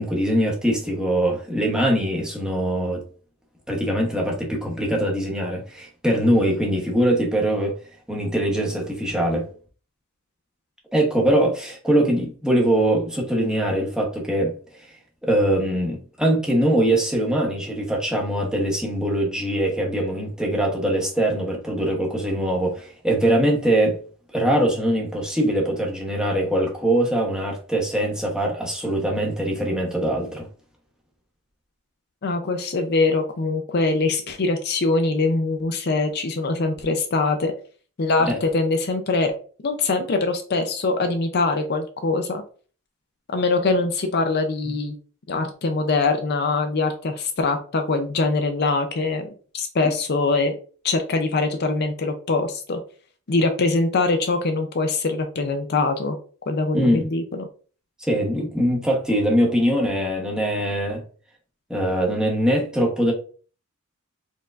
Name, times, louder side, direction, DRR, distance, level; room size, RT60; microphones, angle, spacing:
voice 1, 0.0-3.0 3.7-7.8 8.1-9.5 10.9-14.5 14.8-14.9 15.2-24.0 24.3-30.5 38.2-38.4 56.7-57.1 58.0-61.0 61.7-63.1, right 1 dB, 5° right, 1.0 m, -22 dB
voice 2, 32.2-37.5 38.0-39.3 39.6-42.4 43.3-44.9 45.3-49.3 49.5-50.6 50.8-52.8 53.3-56.2 56.5-57.4, left 3 dB, 45° left, 0.5 m, -23 dB
4.5 x 3.6 x 2.5 m
head